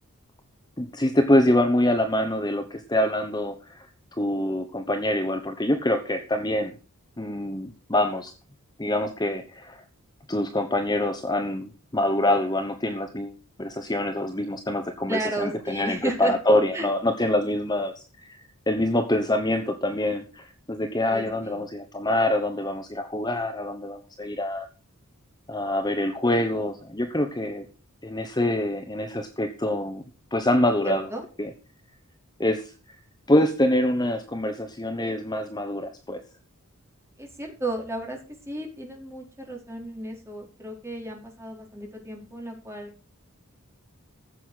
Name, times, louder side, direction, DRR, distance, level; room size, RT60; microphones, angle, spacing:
voice 1, 0.8-3.8 4.2-6.7 7.2-8.3 8.8-9.8 10.3-13.3 13.6-24.7 25.5-27.6 28.0-30.0 30.3-31.1 31.4-31.5 32.4-32.7 33.3-36.2, left 1 dB, 20° left, 7 dB, 1.0 m, -25 dB
voice 2, 15.1-16.3 16.7-16.9 21.1-21.6 30.8-31.2 37.2-38.2 38.5-43.1, right 2 dB, 10° right, 0 dB, 4.4 m, -33 dB
15.0 x 7.8 x 6.3 m, 0.36 s
head